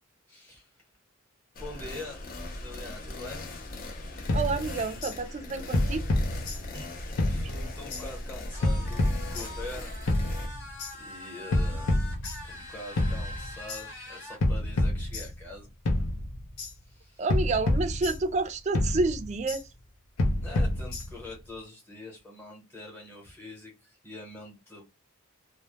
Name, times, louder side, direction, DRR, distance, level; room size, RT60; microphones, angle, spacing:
voice 1, 0.3-0.7 1.6-3.5 6.7-9.9 10.9-11.9 12.4-15.7 16.8-17.3 20.4-24.8, left 2 dB, 10° left, 0.8 m, -44 dB
sound 1, 1.6-10.5, left 1 dB, 40° left, 0.4 m, -39 dB
sound 2, 4.3-5.2 5.7-6.9 7.2-8.0 8.6-9.7 10.1-10.9 11.5-12.7 13.0-13.8 14.4-15.6 15.9-16.7 17.3-18.5 18.7-19.6 20.2-21.3, left 1 dB, 80° left, 0.6 m, -28 dB
voice 2, 4.3-6.0 17.2-19.6, right 3 dB, 30° right, 0.3 m, -29 dB
sound 3, 8.5-14.4, left 1 dB, 55° left, 0.9 m, -44 dB
2.2 x 2.0 x 2.8 m
head